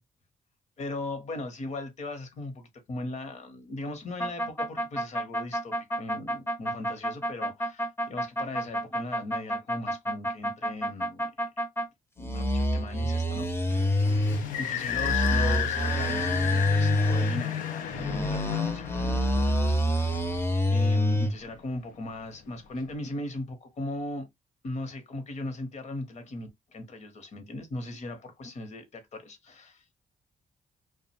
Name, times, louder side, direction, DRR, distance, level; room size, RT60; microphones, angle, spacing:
voice 1, 0.8-11.3 12.2-20.4 20.7-24.3 24.6-30.0, left 2 dB, 60° left, 0.9 m, -38 dB
sound 1, 4.2-11.9 12.2-14.4 14.9-17.4 17.9-21.3, equal, 20° left, 0.6 m, -27 dB
sound 2, 13.7-21.0, left 9 dB, 90° left, 0.5 m, -33 dB
2.4 x 2.2 x 2.8 m
cardioid pair, 80°, 13 cm